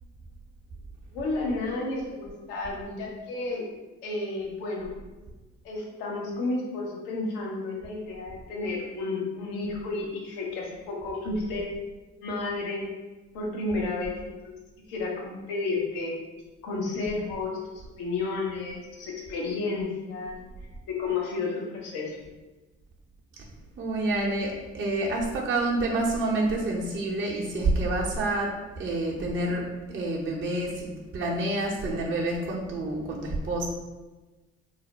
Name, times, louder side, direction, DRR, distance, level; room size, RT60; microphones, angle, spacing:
voice 1, 1.1-3.7 4.0-4.9 5.6-11.8 12.2-12.9 13.3-14.5 14.9-16.2 16.6-20.4 20.9-22.2, left 3 dB, 80° left, -2 dB, 0.8 m, -32 dB
voice 2, 23.8-33.7, right 2 dB, 35° right, -3 dB, 0.7 m, -28 dB
2.5 x 2.1 x 3.9 m, 1.2 s
hypercardioid pair, 45°, 34 cm